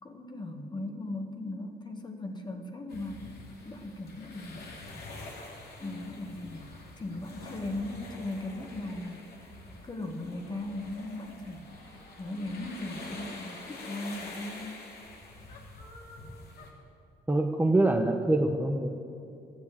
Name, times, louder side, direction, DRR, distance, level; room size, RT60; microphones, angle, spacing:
voice 1, 0.0-3.2 3.6-4.7 5.8-6.7 7.0-9.5 9.8-14.7, left 2 dB, 25° left, 4 dB, 1.6 m, -38 dB
sound 1, 2.9-16.7, left 2 dB, 75° left, 2.7 m, -46 dB
voice 2, 17.3-18.9, right 2 dB, 10° right, 2 dB, 0.9 m, -25 dB
14.0 x 9.6 x 8.8 m, 2.6 s
cardioid pair, 110°, 16 cm